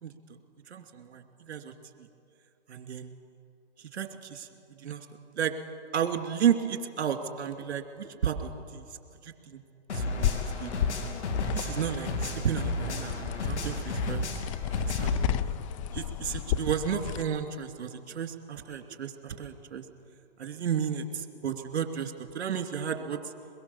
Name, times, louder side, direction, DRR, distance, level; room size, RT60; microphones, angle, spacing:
voice 1, 0.7-1.7 2.0-2.1 2.7-3.1 3.8-4.5 4.8-5.1 5.4-5.5 5.9-8.9 9.2-9.6 9.9-10.7 11.5-14.3 14.7-15.2 15.9-19.8 20.4-23.2, right 8 dB, 65° right, 5 dB, 2.7 m, -32 dB
sound 1, 9.9-15.2, left 2 dB, 75° left, 2.9 m, -33 dB
sound 2, 10.2-17.2, left 10 dB, 30° left, 0.5 m, -33 dB
23.0 x 22.0 x 7.1 m, 2.5 s
hypercardioid pair, 135°, 35 cm